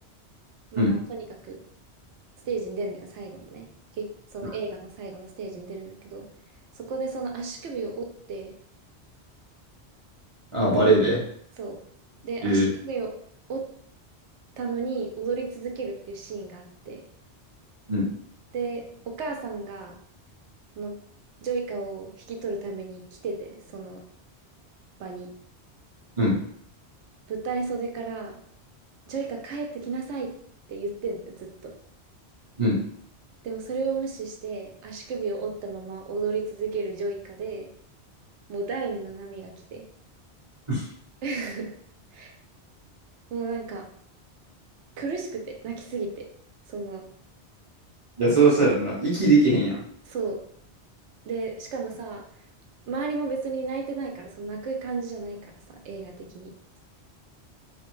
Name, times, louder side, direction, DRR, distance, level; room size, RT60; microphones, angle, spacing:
voice 1, 0.7-1.6 2.5-3.7 4.0-6.3 6.7-8.6 11.6-11.8 12.2-13.1 13.5-13.7 14.6-17.0 18.5-20.0 20.8-21.0 21.4-24.0 25.0-25.3 27.3-28.4 29.1-30.3 30.7-31.7 33.4-37.7 38.5-39.9 41.2-41.7 42.1-42.3 43.3-43.9 45.0-46.3 46.7-47.0 50.1-50.4 51.3-52.2 52.8-56.5, right 4 dB, 90° right, 2 dB, 0.9 m, -33 dB
voice 2, 10.5-11.2 12.4-12.7 17.9-18.1 26.2-26.4 32.6-32.7 40.7-40.8 48.2-49.8, right 2 dB, 30° right, -6 dB, 0.8 m, -20 dB
3.2 x 2.2 x 3.0 m, 0.64 s
omnidirectional pair, 1.1 m